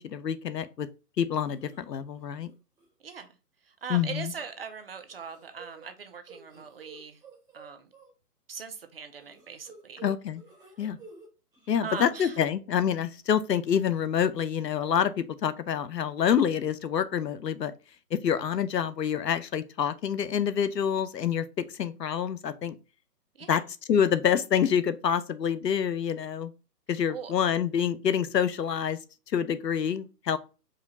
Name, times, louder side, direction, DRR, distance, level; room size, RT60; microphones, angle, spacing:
voice 1, 0.0-0.9 1.2-2.5 3.9-4.3 10.0-10.4 10.8-11.0 11.7-17.7 18.1-22.8 23.5-23.6 23.9-26.5 26.9-29.0 29.3-30.4, left 8 dB, 85° left, 0.7 m, -27 dB
sound 1, 1.4-1.8 2.2-2.5 2.8-2.9 4.0-4.7 5.0-8.1 9.2-11.3 11.5-12.3, right 4 dB, 5° right, 1.2 m, -51 dB
voice 2, 3.6-7.2 7.5-7.9 8.5-10.0 11.8-12.4 23.4-23.6 27.1-27.3, right 6 dB, 40° right, 0.5 m, -40 dB
4.9 x 2.3 x 4.1 m
figure-of-eight pair, 140°, 48 cm